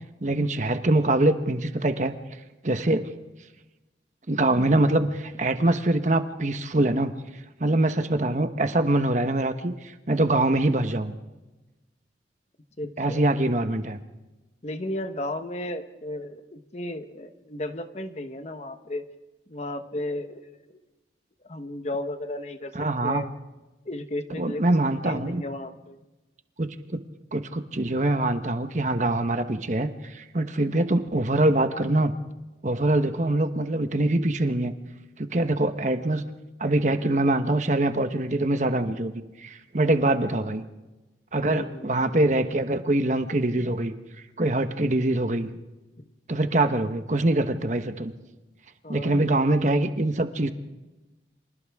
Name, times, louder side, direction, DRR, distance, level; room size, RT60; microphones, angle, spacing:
voice 1, 0.2-2.1 2.6-3.1 4.3-7.1 7.6-11.1 13.0-14.0 22.7-23.3 24.4-25.4 26.6-27.0 27.3-32.1 32.6-34.7 35.2-36.2 36.6-39.1 39.4-40.6 41.3-43.9 44.4-45.5 46.3-48.1 48.9-50.5, right 2 dB, 45° right, 8 dB, 1.1 m, -24 dB
voice 2, 12.8-13.3 14.6-19.0 19.5-20.8 21.5-22.7 23.0-23.3 23.8-24.6 25.0-26.0 39.8-40.5 41.5-41.9 48.8-49.2, left 1 dB, 40° left, 8 dB, 1.2 m, -34 dB
30.0 x 26.0 x 3.6 m, 1.1 s
head